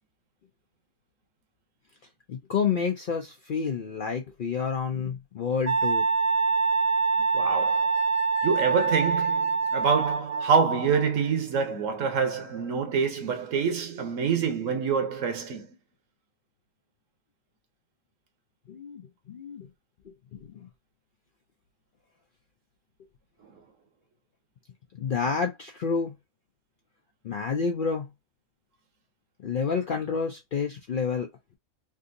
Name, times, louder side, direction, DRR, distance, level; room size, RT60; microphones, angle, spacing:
voice 1, 2.3-6.0 18.7-19.7 20.1-20.7 24.9-26.1 27.2-28.1 29.4-31.3, left 5 dB, 60° left, 0.5 m, -29 dB
Wind instrument woodwind instrument, 5.7-10.6, right 4 dB, 35° right, 0.8 m, -25 dB
voice 2, 7.3-8.0 8.4-15.7, right 6 dB, 70° right, 1.2 m, -26 dB
3.5 x 2.6 x 2.5 m
omnidirectional pair, 1.4 m